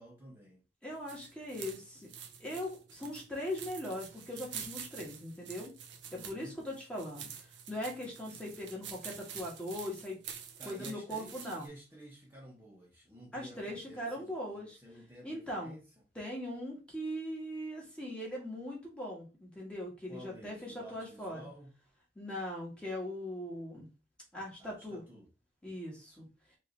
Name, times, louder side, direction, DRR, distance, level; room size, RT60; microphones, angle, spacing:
voice 1, 0.0-0.6 6.1-6.6 10.6-15.9 20.1-21.7 24.6-25.3, right 1 dB, 15° right, -4 dB, 1.1 m, -52 dB
voice 2, 0.8-2.1 2.4-5.7 6.1-7.3 7.7-10.2 10.6-11.7 13.3-14.8 15.2-15.7 16.1-21.5 22.1-23.9 24.3-25.0 25.6-26.3, equal, 5° left, -3 dB, 1.5 m, -40 dB
sound 1, 0.9-11.7, right 8 dB, 85° right, 0.7 m, -48 dB
4.8 x 2.8 x 3.2 m, 0.31 s
head